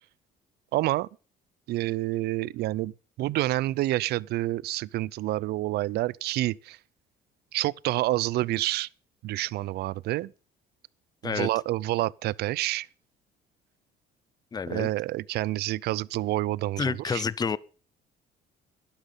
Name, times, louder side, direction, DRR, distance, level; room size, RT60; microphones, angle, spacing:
voice 1, 0.7-1.1 1.7-2.9 3.2-6.8 7.5-8.9 9.2-10.3 11.2-12.9 14.7-17.2, right 17 dB, 75° right, 0.5 m, -28 dB
voice 2, 14.5-14.9 16.8-17.6, left 5 dB, 25° left, 0.7 m, -29 dB
12.0 x 12.0 x 5.4 m
cardioid pair, 110°, 17 cm